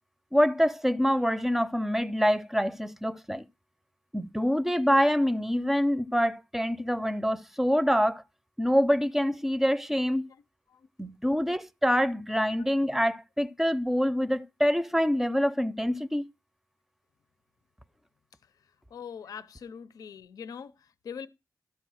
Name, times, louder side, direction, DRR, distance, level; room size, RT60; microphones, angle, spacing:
voice 1, 0.3-3.5 4.1-8.2 8.6-10.3 11.0-16.3, equal, 5° right, 0.6 m, -26 dB
voice 2, 18.9-21.3, left 7 dB, 85° left, 0.6 m, -42 dB
12.5 x 4.8 x 6.3 m
cardioid pair, 75°, 6 cm